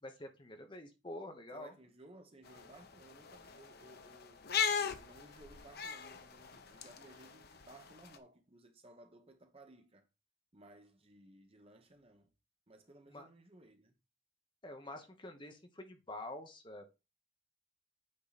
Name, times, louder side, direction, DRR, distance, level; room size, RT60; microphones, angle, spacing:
voice 1, 0.0-1.7 13.1-13.3 14.6-16.8, left 1 dB, 25° left, 0.9 m, -47 dB
voice 2, 1.5-4.5 4.8-10.1 10.5-12.3 12.7-13.9, right 2 dB, 30° right, 1.0 m, -59 dB
sound 1, 2.5-8.2, left 7 dB, 50° left, 0.7 m, -39 dB
8.7 x 3.8 x 4.1 m
head